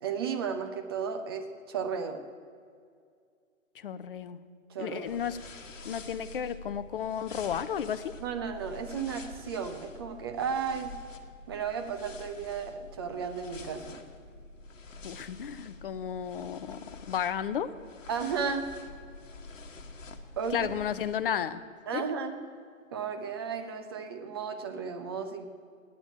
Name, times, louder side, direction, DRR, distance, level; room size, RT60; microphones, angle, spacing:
voice 1, 0.0-2.2 4.7-5.2 8.2-10.9 11.5-14.0 18.1-18.7 20.4-20.7 21.9-22.4 22.9-25.5, right 6 dB, 20° right, 6 dB, 0.5 m, -34 dB
voice 2, 3.8-4.4 4.8-5.4 5.8-8.1 15.0-17.7 20.5-21.6 21.9-22.1, left 8 dB, 40° left, 14 dB, 0.6 m, -33 dB
sound 1, 5.1-21.1, left 3 dB, 65° left, 1.3 m, -47 dB
9.2 x 8.9 x 9.0 m, 2.2 s
figure-of-eight pair, 130°, 41 cm